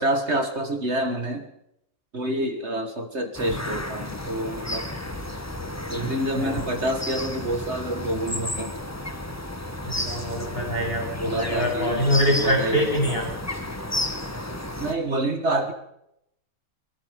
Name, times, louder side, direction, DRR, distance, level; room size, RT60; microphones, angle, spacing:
voice 1, 0.0-1.5 2.1-4.9 5.9-8.7 11.2-12.0 12.4-13.2 14.8-15.7, right 1 dB, 50° right, 7 dB, 2.0 m, -27 dB
sound 1, 3.3-14.9, left 1 dB, 10° left, 1.7 m, -32 dB
voice 2, 6.3-6.7 9.9-13.3, equal, 45° left, -1 dB, 8.1 m, -24 dB
24.0 x 22.0 x 5.2 m, 0.79 s
omnidirectional pair, 1.4 m